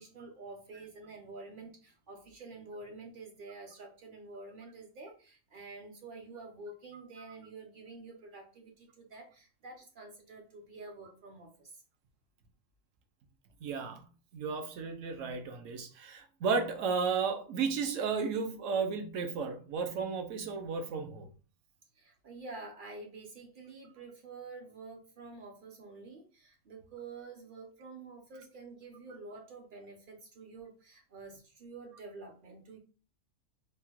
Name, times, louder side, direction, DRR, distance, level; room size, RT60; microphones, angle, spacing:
voice 1, 0.0-11.8 21.9-32.8, right 3 dB, 50° right, 0.6 m, -48 dB
voice 2, 13.6-14.1 14.3-21.3, right 5 dB, 70° right, 0.9 m, -33 dB
3.5 x 2.1 x 2.9 m
omnidirectional pair, 1.5 m